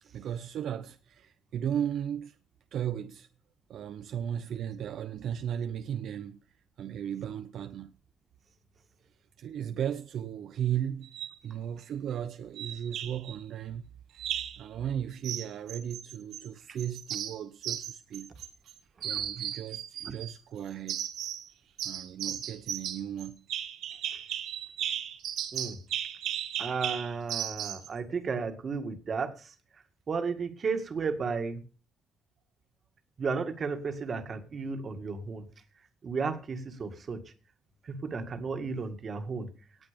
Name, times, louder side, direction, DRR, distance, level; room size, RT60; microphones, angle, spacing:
voice 1, 0.0-2.4 2.7-3.3 3.7-6.4 6.8-8.0 9.4-11.1 11.4-13.9 14.6-18.3 19.0-21.1 21.8-23.5, right 9 dB, 65° right, 0.8 m, -35 dB
sound 1, 11.0-11.4 12.6-13.4 14.2-14.6 15.2-16.5 16.8-18.7 19.0-20.4 20.9-21.5 21.8-27.9, right 10 dB, 80° right, 2.0 m, -36 dB
voice 2, 26.6-29.5 30.1-31.6 33.2-35.5 36.0-37.2 37.8-39.5, right 5 dB, 40° right, 2.0 m, -33 dB
18.0 x 8.2 x 5.2 m
cardioid pair, 145°, 0 cm